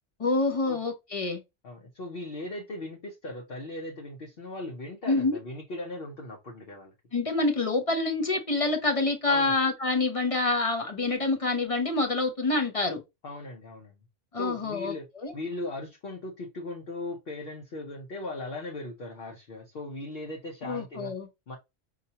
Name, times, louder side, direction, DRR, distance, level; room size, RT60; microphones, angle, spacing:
voice 1, 0.2-1.4 5.1-5.4 7.1-13.0 14.3-15.3 20.6-21.3, left 3 dB, 35° left, 0.7 m, -27 dB
voice 2, 1.6-6.9 9.3-9.6 13.2-13.9 14.3-15.1 15.3-21.1 21.5-21.6, left 2 dB, 50° left, 1.0 m, -38 dB
5.4 x 2.8 x 2.8 m
omnidirectional pair, 1.3 m